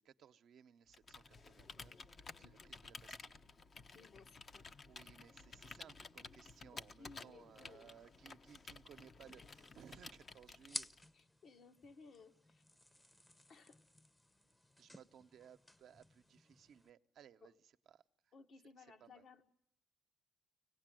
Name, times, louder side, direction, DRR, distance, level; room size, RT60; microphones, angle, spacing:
voice 1, 0.0-3.3 4.9-10.9 14.8-18.3 18.8-19.2, right 8 dB, 70° right, 0.9 m, -62 dB
Computer keyboard, 0.9-11.2, left 4 dB, 40° left, 0.9 m, -54 dB
voice 2, 2.4-2.7 3.9-4.7 6.7-7.9 11.1-12.6 13.5-13.8 17.4-17.5 18.3-19.5, left 4 dB, 60° left, 1.7 m, -60 dB
sound 1, 9.3-16.9, left 1 dB, 15° left, 0.9 m, -54 dB
24.5 x 18.5 x 9.1 m
cardioid pair, 90°, 0 cm